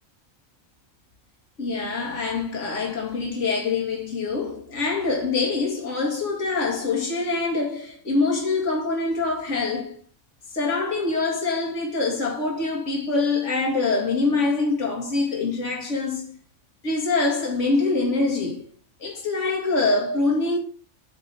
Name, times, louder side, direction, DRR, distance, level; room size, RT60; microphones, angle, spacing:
voice 1, 1.6-10.0 10.5-16.3 16.8-18.7 19.0-20.6, left 3 dB, 60° left, 2.7 m, -24 dB
9.5 x 6.5 x 4.6 m
omnidirectional pair, 1.4 m